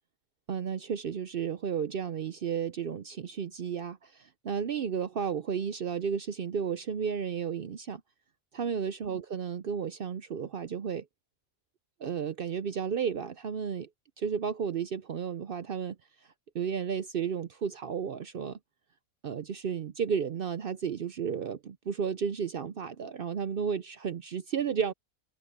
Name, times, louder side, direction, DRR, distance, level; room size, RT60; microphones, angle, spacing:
voice 1, 0.5-8.0 8.5-11.1 12.0-13.9 14.2-16.0 16.5-18.6 19.2-24.9, right 7 dB, 60° right, 0.6 m, -33 dB
omnidirectional pair, 1.5 m